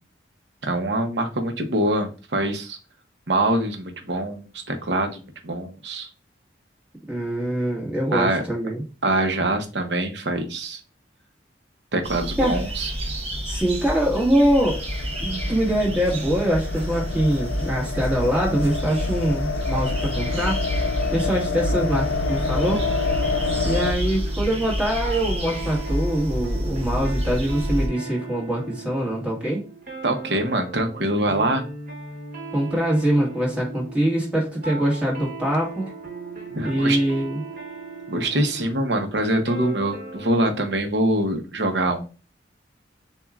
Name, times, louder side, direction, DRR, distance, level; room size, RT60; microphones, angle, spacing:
voice 1, 0.6-2.8 3.3-6.1 8.1-8.4 9.0-10.8 11.9-12.9 30.0-31.6 36.5-37.0 38.1-42.1, right 1 dB, 65° right, 5 dB, 0.8 m, -24 dB
voice 2, 7.1-8.8 12.4-12.6 13.4-14.8 15.2-20.6 21.1-22.9 23.6-29.6 32.5-35.9 36.6-37.4, right 1 dB, 5° right, -4 dB, 1.6 m, -23 dB
sound 1, 12.0-27.9, equal, 35° right, 0.8 m, -29 dB
sound 2, 14.7-23.9, left 4 dB, 85° left, 0.4 m, -28 dB
sound 3, 21.6-40.8, right 3 dB, 50° right, 1.2 m, -38 dB
7.0 x 2.4 x 2.4 m, 0.33 s
head